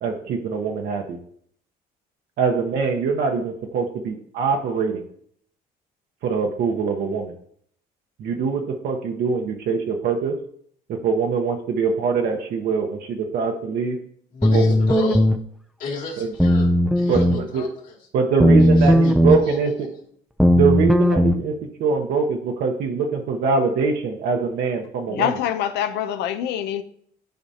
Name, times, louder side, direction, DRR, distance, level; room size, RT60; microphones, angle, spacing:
voice 1, 0.0-1.2 2.4-5.0 6.2-7.3 8.2-10.3 10.9-14.0 14.5-15.1 16.2-16.3 17.1-17.6 18.1-19.7 20.5-21.5 21.8-25.3, right 5 dB, 70° right, 1.0 m, -23 dB
voice 2, 14.3-15.2 15.8-16.7 17.0-18.0 18.7-19.9, left 4 dB, 55° left, 2.6 m, -34 dB
sound 1, 14.4-15.4 16.4-17.4 18.4-19.4 20.4-21.4, equal, ahead, 0.4 m, -16 dB
voice 3, 25.1-26.8, left 10 dB, 85° left, 0.7 m, -25 dB
10.5 x 5.1 x 2.8 m
cardioid pair, 110°, 17 cm